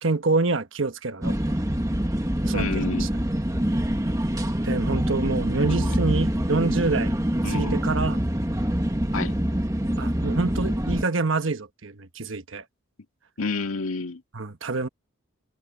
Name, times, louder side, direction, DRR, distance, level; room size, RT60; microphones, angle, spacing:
voice 1, 0.0-1.4 2.4-2.7 3.0-3.1 4.6-7.1 7.5-8.2 10.0-12.6 14.3-14.9, right 3 dB, 65° right, 1.2 m, -26 dB
sound 1, 1.2-11.0, equal, 15° right, 1.3 m, -25 dB
voice 2, 2.5-3.1 5.7-6.0 7.4-7.8 9.1-9.4 13.4-14.2, left 3 dB, 85° left, 1.9 m, -29 dB
head